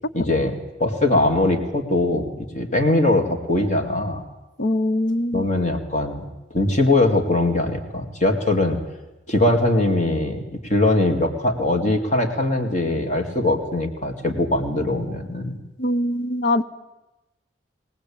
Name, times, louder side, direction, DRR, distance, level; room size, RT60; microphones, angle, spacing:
voice 1, 0.1-4.2 5.3-6.2 6.5-8.8 9.3-15.6, left 2 dB, 40° left, 4 dB, 2.3 m, -21 dB
voice 2, 4.6-5.5 15.8-16.6, left 1 dB, 60° left, 12 dB, 0.9 m, -22 dB
22.0 x 18.5 x 8.7 m, 1.0 s
head